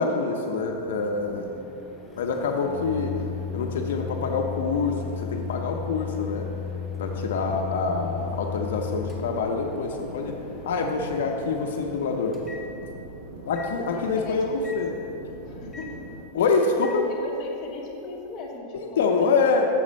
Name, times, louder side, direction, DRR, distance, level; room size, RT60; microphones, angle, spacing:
voice 1, 0.0-1.4 2.2-3.1 3.5-6.5 7.0-10.3 10.7-12.4 13.5-14.9 16.3-17.0 19.0-19.7, left 4 dB, 75° left, 2 dB, 0.6 m, -26 dB
Microwave oven, 0.6-13.1 13.6-13.7 14.6-14.8 15.7-15.9 16.8-17.0, left 6 dB, 5° left, 0.5 m, -36 dB
voice 2, 1.3-1.7 13.7-14.8 15.5-16.0 17.1-19.3, left 3 dB, 25° left, -3 dB, 1.0 m, -39 dB
sound 1, 7.1-16.2, right 1 dB, 75° right, 1.7 m, -42 dB
7.0 x 4.2 x 6.4 m, 2.8 s
supercardioid pair, 175°, 0 cm